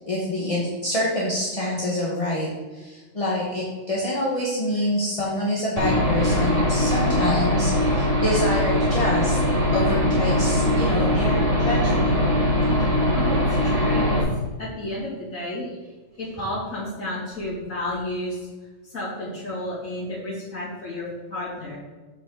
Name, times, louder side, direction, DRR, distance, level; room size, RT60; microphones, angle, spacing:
voice 1, 0.1-9.4 9.7-12.1, left 1 dB, 25° left, -4 dB, 1.1 m, -26 dB
Aircraft / Engine, 5.8-14.2, left 1 dB, 30° right, 1.2 m, -21 dB
voice 2, 13.1-14.2 14.6-15.9 16.2-18.5 18.8-21.8, left 1 dB, 80° left, -9 dB, 2.6 m, -31 dB
7.7 x 5.1 x 3.8 m, 1.3 s
omnidirectional pair, 1.4 m